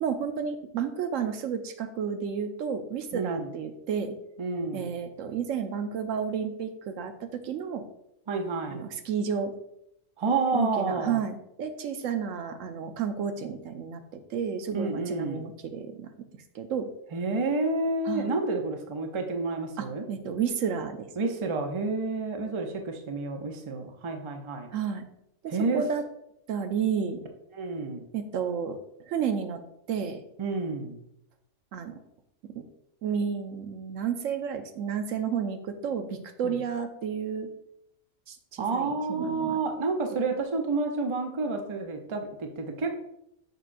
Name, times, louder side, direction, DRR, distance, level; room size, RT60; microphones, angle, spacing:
voice 1, 0.0-4.2 4.7-7.8 8.7-9.5 10.5-16.1 16.5-16.9 18.1-18.3 19.8-21.1 24.7-25.0 25.4-26.0 26.5-27.2 28.1-28.8 29.1-29.6 29.9-30.2 31.7-32.0 32.4-32.6 33.0-37.5 38.3-39.6 40.1-40.2, right 7 dB, 75° right, 8 dB, 1.0 m, -31 dB
voice 2, 3.1-3.5 4.4-4.9 8.3-8.9 10.2-11.2 14.7-15.5 17.1-20.0 21.2-24.7 25.5-25.8 27.5-28.1 30.4-31.0 36.4-36.6 38.6-43.0, right 3 dB, 35° right, 5 dB, 0.5 m, -29 dB
6.6 x 6.0 x 2.5 m, 0.79 s
omnidirectional pair, 1.4 m